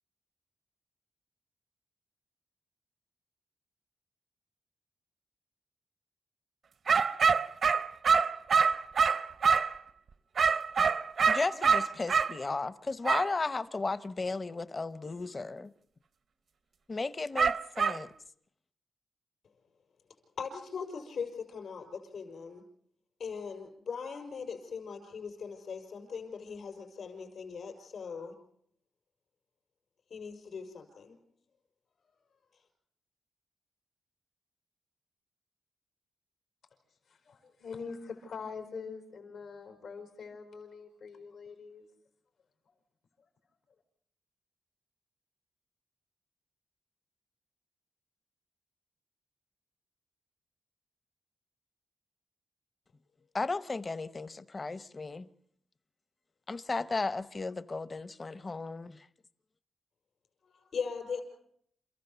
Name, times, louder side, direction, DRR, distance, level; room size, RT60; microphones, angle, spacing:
sound 1, 6.9-9.8 10.4-12.3 13.0-13.3 17.4-18.0, right 5 dB, 65° right, 0.7 m, -25 dB
voice 1, 11.3-15.7 16.9-18.1 53.3-55.3 56.5-59.1, left 3 dB, 35° left, 0.8 m, -34 dB
voice 2, 20.4-22.6 23.2-28.3 30.1-31.2 60.5-61.2, left 5 dB, 70° left, 5.6 m, -40 dB
voice 3, 37.1-41.9, left 5 dB, 90° left, 4.8 m, -44 dB
28.0 x 15.0 x 7.0 m
cardioid pair, 100°, 0 cm